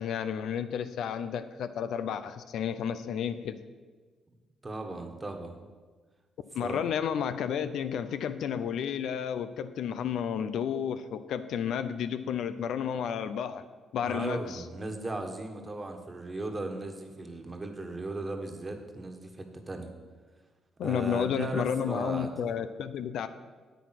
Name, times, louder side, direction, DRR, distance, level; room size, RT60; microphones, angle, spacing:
voice 1, 0.0-3.6 6.5-13.6 13.9-14.6 20.8-23.3, left 8 dB, 75° left, 11 dB, 0.6 m, -32 dB
voice 2, 4.6-5.5 6.6-6.8 14.0-19.9 20.8-22.5, right 2 dB, 25° right, 4 dB, 1.5 m, -37 dB
9.0 x 8.5 x 5.9 m, 1.4 s
cardioid pair, 90°, 0 cm